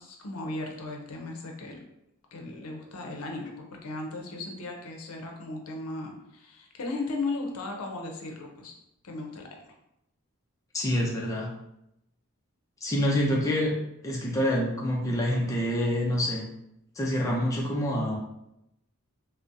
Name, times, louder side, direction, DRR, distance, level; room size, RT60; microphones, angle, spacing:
voice 1, 0.0-1.8 2.3-3.5 3.8-8.7 9.0-9.5 13.1-13.3, left 2 dB, 80° left, 1 dB, 0.6 m, -36 dB
voice 2, 10.7-11.5 12.8-13.7 14.0-16.4 17.0-18.2, equal, 15° left, -3 dB, 0.4 m, -26 dB
3.7 x 2.0 x 2.6 m, 0.83 s
head